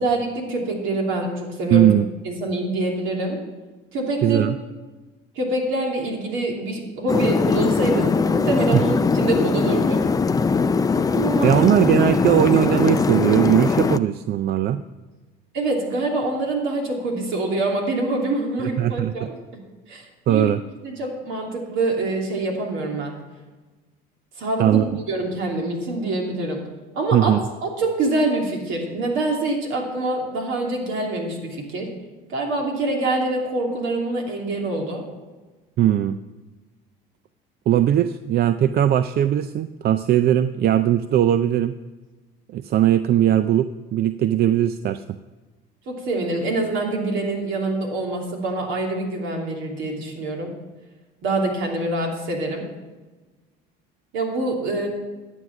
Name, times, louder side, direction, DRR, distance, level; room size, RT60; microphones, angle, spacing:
voice 1, 0.0-1.9 2.2-3.4 3.9-4.4 5.3-10.0 11.1-11.7 15.5-19.6 19.9-20.5 20.8-23.1 24.4-26.6 26.9-27.3 27.6-31.9 32.3-35.1 45.9-50.5 51.2-52.7 54.1-54.9, right 2 dB, 70° right, 0 dB, 2.9 m, -25 dB
voice 2, 1.7-2.1 4.2-4.6 8.7-8.8 11.4-14.8 18.6-19.3 20.3-20.6 24.6-24.8 27.1-27.4 35.8-36.2 37.7-41.7 42.5-45.0, right 11 dB, 50° right, 12 dB, 0.5 m, -19 dB
sound 1, 7.1-14.0, left 5 dB, 15° left, 0.4 m, -20 dB
11.5 x 8.1 x 5.9 m, 1.2 s
supercardioid pair, 100°, 21 cm